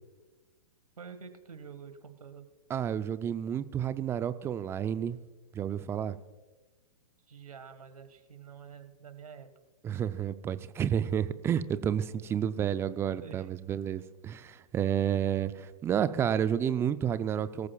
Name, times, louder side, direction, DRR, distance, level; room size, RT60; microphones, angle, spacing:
voice 1, 1.0-2.5 7.3-9.5 11.5-11.8 13.2-13.5, right 6 dB, 80° right, 10 dB, 1.7 m, -48 dB
voice 2, 2.7-5.2 5.5-6.2 9.8-17.7, right 9 dB, 15° right, 14 dB, 0.5 m, -30 dB
22.5 x 14.0 x 2.4 m, 1.2 s
hypercardioid pair, 120°, 19 cm